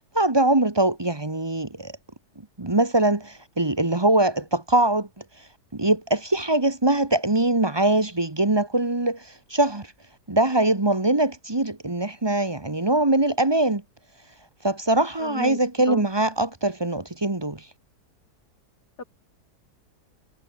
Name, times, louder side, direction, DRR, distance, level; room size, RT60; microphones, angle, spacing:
voice 1, 0.1-2.0 2.6-5.2 5.7-9.9 10.3-13.8 14.6-17.6, right 2 dB, 15° right, 1.2 m, -22 dB
voice 2, 15.2-15.6 15.8-16.1 19.0-19.1, left 3 dB, 90° left, 4.3 m, -33 dB
omnidirectional pair, 1.7 m